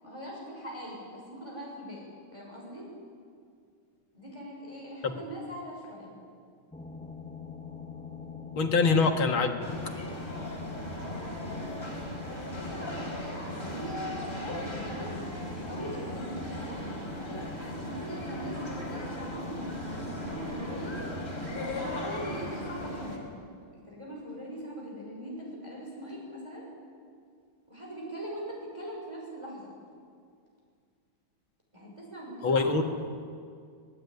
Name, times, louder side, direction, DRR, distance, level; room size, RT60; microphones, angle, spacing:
voice 1, 0.0-2.9 4.1-6.2 8.8-8.9 11.0-11.9 12.3-15.2 15.6-16.8 17.8-21.0 21.5-23.3 23.7-26.7 27.7-29.7 31.7-32.8, equal, 15° right, -3 dB, 6.2 m, -41 dB
sound 1, 6.7-22.2, left 3 dB, 5° left, 1.7 m, -44 dB
voice 2, 8.6-9.9 32.4-32.8, left 4 dB, 70° left, 4 dB, 2.6 m, -25 dB
sound 2, 9.6-23.2, left 1 dB, 25° left, 5.0 m, -37 dB
26.0 x 19.5 x 9.5 m, 2.2 s
omnidirectional pair, 2.3 m